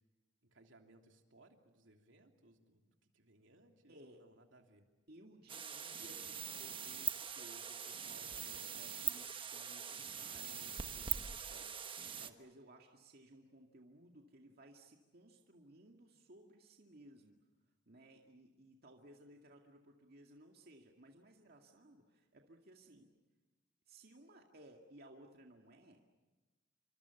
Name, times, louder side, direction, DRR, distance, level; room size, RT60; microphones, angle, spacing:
voice 1, 0.4-4.9, right 2 dB, 80° right, 3 dB, 3.1 m, -66 dB
voice 2, 3.9-4.3 5.1-17.4 17.9-23.1 23.9-26.0, right 1 dB, 55° right, 2 dB, 2.1 m, -60 dB
sound 1, 5.5-12.3, right 7 dB, 25° right, 1.3 m, -42 dB
28.0 x 25.5 x 7.1 m, 1.2 s
head